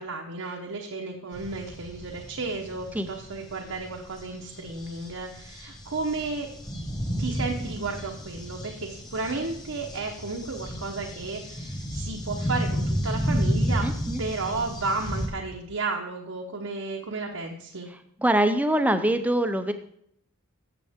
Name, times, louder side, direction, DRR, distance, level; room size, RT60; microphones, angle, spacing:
voice 1, 0.0-6.5 7.2-13.8 14.2-17.9, right 3 dB, 75° right, 0 dB, 1.0 m, -33 dB
sound 1, 1.3-15.3, equal, 20° left, 1.6 m, -32 dB
voice 2, 13.8-14.2 18.2-19.7, right 1 dB, 5° right, 8 dB, 0.5 m, -23 dB
13.0 x 7.6 x 3.6 m, 0.70 s
head